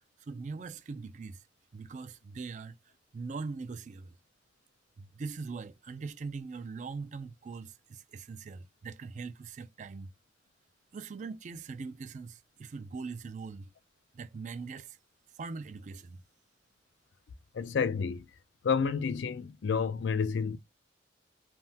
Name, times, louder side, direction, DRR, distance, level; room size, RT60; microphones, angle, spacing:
voice 1, 0.3-1.4 1.7-2.7 3.1-4.1 5.0-10.1 10.9-13.7 14.1-15.0 15.4-16.2, right 4 dB, 40° right, 0.3 m, -41 dB
voice 2, 17.5-18.2 18.6-20.6, left 5 dB, 70° left, 0.4 m, -30 dB
3.4 x 2.1 x 2.6 m
head